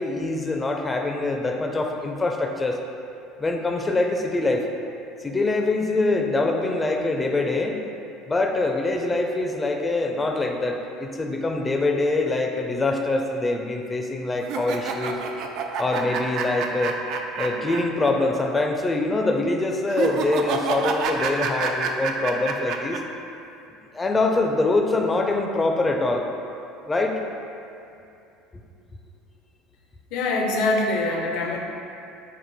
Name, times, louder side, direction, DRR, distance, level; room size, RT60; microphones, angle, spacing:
voice 1, 0.0-2.8 3.4-4.7 5.2-7.8 8.3-15.2 15.8-17.0 17.4-23.0 23.9-26.3 26.8-27.2, left 2 dB, 20° left, 2 dB, 0.4 m, -24 dB
sound 1, 14.4-18.1 18.4-18.5 19.9-23.0, right 5 dB, 60° right, 0.3 m, -28 dB
voice 2, 30.1-31.6, left 2 dB, 70° left, 1 dB, 0.5 m, -24 dB
4.4 x 2.5 x 4.0 m, 2.6 s
supercardioid pair, 105°, 0 cm